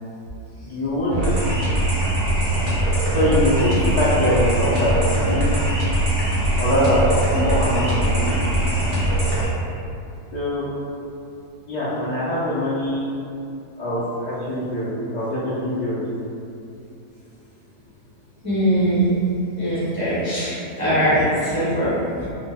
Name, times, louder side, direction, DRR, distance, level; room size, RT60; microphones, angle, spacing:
voice 1, 0.7-1.2 3.1-5.5 6.6-8.4 10.3-10.6 11.7-13.0 13.8-16.0, equal, 80° left, -13 dB, 0.3 m, -23 dB
sound 1, 1.1-9.4, right 1 dB, 60° right, 0.8 m, -21 dB
voice 2, 18.4-19.1 19.6-22.2, equal, 20° right, -13 dB, 0.6 m, -21 dB
2.8 x 2.1 x 3.4 m, 2.6 s
omnidirectional pair, 1.7 m